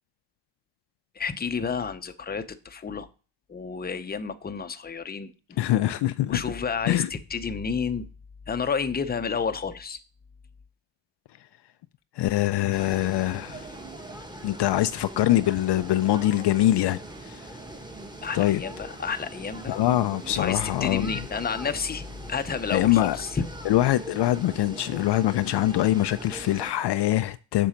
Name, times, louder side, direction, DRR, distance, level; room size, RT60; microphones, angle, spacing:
voice 1, 1.2-3.1 3.5-5.7 6.3-8.1 8.5-10.0 18.2-19.8 20.3-23.4, left 5 dB, 20° left, 0.7 m, -30 dB
voice 2, 5.6-6.4 6.9-7.1 12.2-13.7 14.4-17.5 18.3-18.6 19.7-21.2 22.7-23.2 23.6-27.7, left 14 dB, 60° left, 0.5 m, -23 dB
sound 1, 12.7-26.7, right 1 dB, 10° right, 1.3 m, -41 dB
7.3 x 6.1 x 5.1 m
cardioid pair, 100°, 47 cm